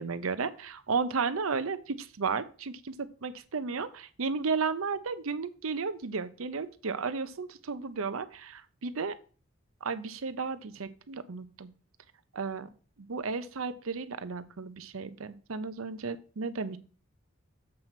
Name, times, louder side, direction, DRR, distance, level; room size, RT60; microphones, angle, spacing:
voice 1, 0.0-9.1 9.8-11.7 12.3-12.7 13.0-16.8, right 5 dB, 80° right, 12 dB, 0.7 m, -33 dB
7.6 x 4.4 x 5.7 m, 0.38 s
head